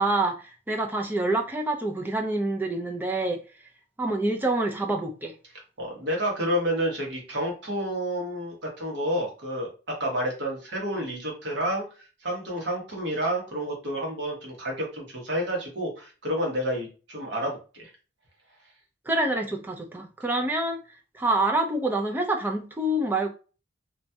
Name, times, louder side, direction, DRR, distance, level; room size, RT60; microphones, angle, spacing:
voice 1, 0.0-3.4 4.0-5.3 19.1-20.8 21.1-23.3, right 2 dB, 10° right, 0.4 m, -26 dB
voice 2, 5.8-17.9, equal, 60° right, 1.1 m, -30 dB
3.1 x 2.2 x 2.7 m
head